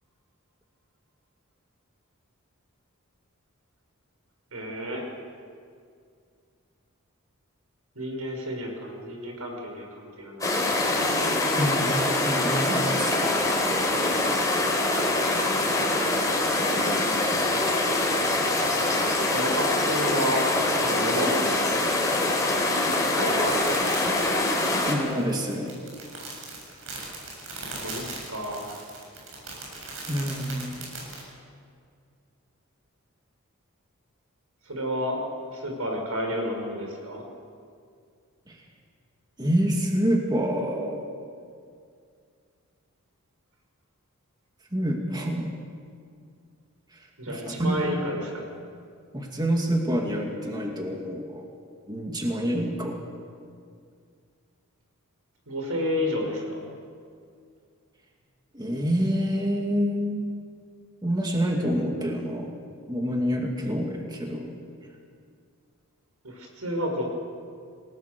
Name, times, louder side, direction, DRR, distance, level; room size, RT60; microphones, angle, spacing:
voice 1, 4.5-5.0 8.0-10.5 19.3-20.5 20.8-21.7 22.9-23.6 27.8-28.8 34.6-35.2 35.5-37.2 47.2-48.5 55.5-56.6 66.2-67.0, equal, 85° right, 2 dB, 5.9 m, -31 dB
sound 1, 10.4-24.9, left 2 dB, 15° left, 4.0 m, -24 dB
voice 2, 11.6-13.1 24.9-25.7 30.1-30.9 38.5-38.6 39.4-41.1 44.7-45.6 46.9-47.0 47.3-47.8 49.1-51.5 51.9-53.0 58.5-60.3 61.0-62.5 62.9-64.5, equal, 20° right, 0 dB, 2.3 m, -27 dB
sound 2, 23.4-31.2, right 3 dB, 65° right, 7.8 m, -39 dB
29.5 x 19.0 x 6.8 m, 2.2 s
head